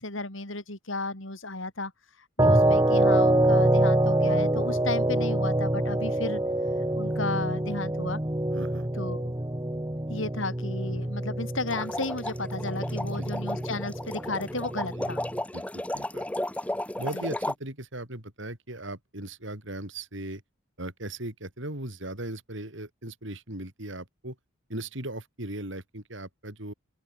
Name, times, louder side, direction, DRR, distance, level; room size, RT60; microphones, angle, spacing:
voice 1, 0.0-1.9 2.4-6.4 7.0-8.2 9.0-9.3 10.1-15.2 17.1-17.3, left 2 dB, 65° left, 4.7 m, -34 dB
sound 1, 2.4-15.4, right 1 dB, 15° right, 1.1 m, -26 dB
voice 2, 8.5-8.9 13.0-13.3 15.0-15.1 15.5-16.3 17.0-20.4 20.8-24.4 24.7-26.7, right 1 dB, 60° right, 4.3 m, -38 dB
sound 2, 11.7-17.5, left 1 dB, 5° left, 0.9 m, -34 dB
open air
head